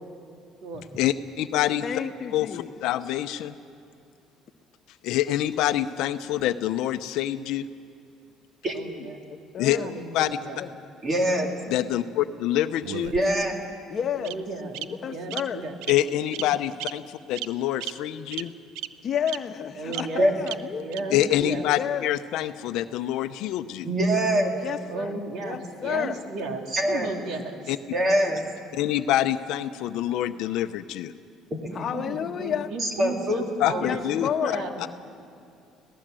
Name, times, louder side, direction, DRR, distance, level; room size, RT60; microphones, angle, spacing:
voice 1, 1.0-1.8 2.3-3.6 5.0-7.7 9.6-9.8 10.1-10.3 11.7-13.1 15.9-18.5 21.1-23.9 27.7-27.8 28.7-31.1 33.6-34.9, left 13 dB, 75° left, 10 dB, 0.7 m, -26 dB
voice 2, 1.8-2.7 9.0-9.9 10.6-10.7 13.9-14.4 14.8-15.6 19.0-21.0 21.8-22.1 24.6-26.2 31.7-32.7 33.8-34.7, left 8 dB, 40° left, 5 dB, 1.2 m, -31 dB
voice 3, 8.7-9.1 9.7-10.6 14.2-14.8 15.1-15.8 19.8-20.3 20.8-21.7 24.9-27.6 31.9-34.1 34.4-34.9, right 3 dB, 65° right, 4 dB, 2.8 m, -34 dB
voice 4, 11.0-11.5 13.1-13.5 20.2-20.3 23.8-24.6 26.7-27.1 27.9-28.4 31.5-31.8 32.8-33.4 33.7-33.8, equal, 30° right, 3 dB, 2.3 m, -24 dB
Bird vocalization bird call bird song, 12.8-13.6 14.2-14.3 14.7-14.8 15.3-15.4 15.8-16.0 16.3-16.5 16.8-16.9 17.4-17.5 17.8-17.9 18.3-18.4 18.8-18.9 19.3-19.4 19.9-20.0 20.5-20.6 20.9-21.0, right 13 dB, 90° right, 0.7 m, -33 dB
26.0 x 18.0 x 7.7 m, 2.5 s
cardioid pair, 135°, 0 cm